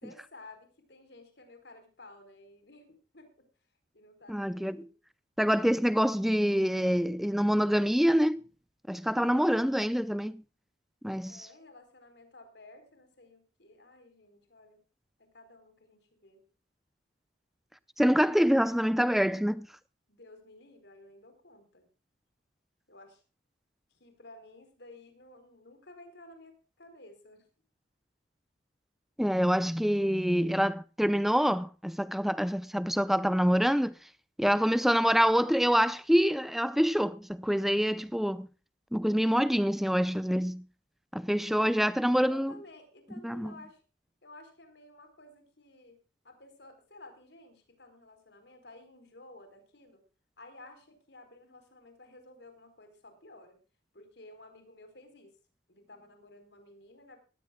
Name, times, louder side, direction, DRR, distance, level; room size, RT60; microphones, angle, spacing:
voice 1, 0.0-3.5 3.9-4.9 9.2-9.7 11.3-14.8 15.2-16.5 20.1-21.9 22.9-23.2 23.9-27.5 42.3-43.8 44.2-46.0 46.2-50.0 50.4-53.6 53.9-55.4 55.7-57.2, left 2 dB, 65° left, 4.4 m, -54 dB
voice 2, 4.3-4.8 5.4-8.4 8.9-10.4 11.0-11.5 18.0-19.7 29.2-33.9 34.4-38.5 38.9-40.6 41.1-42.5 43.2-43.5, equal, ahead, 0.6 m, -26 dB
19.0 x 15.5 x 2.3 m
head